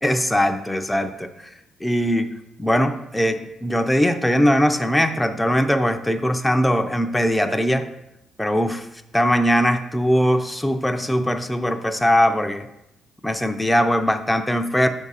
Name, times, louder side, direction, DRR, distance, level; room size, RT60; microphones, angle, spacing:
voice 1, 0.0-1.3 1.8-2.3 2.6-7.9 8.4-8.9 9.1-12.7 13.2-14.9, equal, 5° left, 6 dB, 0.5 m, -20 dB
6.1 x 3.6 x 5.6 m, 0.84 s
cardioid pair, 90°, 0 cm